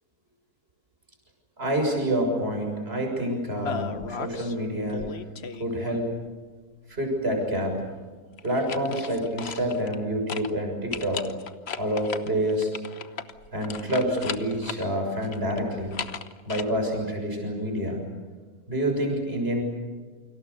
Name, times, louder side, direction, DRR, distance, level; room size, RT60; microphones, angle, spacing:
voice 1, 1.6-5.2 5.6-6.1 6.9-7.8 8.4-11.3 11.8-12.7 13.5-16.0 16.4-18.0 18.7-19.6, equal, 40° right, 2 dB, 6.8 m, -27 dB
sound 1, 3.6-4.5 4.9-6.2 8.4-10.0 10.3-10.5 10.9-14.9 15.2-16.6, left 6 dB, 45° left, 1.2 m, -36 dB
29.0 x 25.5 x 6.9 m, 1.4 s
omnidirectional pair, 1.6 m